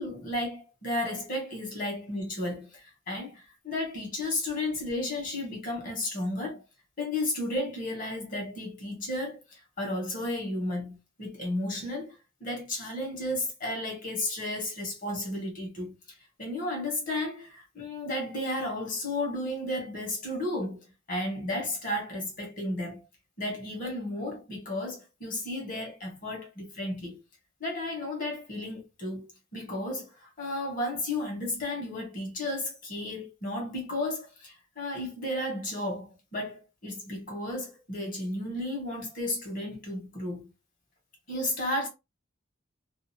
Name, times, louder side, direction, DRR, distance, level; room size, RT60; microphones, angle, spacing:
voice 1, 0.0-6.6 7.0-12.1 12.4-15.9 16.4-20.8 21.1-23.0 23.4-27.2 27.6-29.3 29.5-40.5 41.3-41.9, left 1 dB, 45° left, 1.2 m, -33 dB
2.7 x 2.4 x 2.7 m
head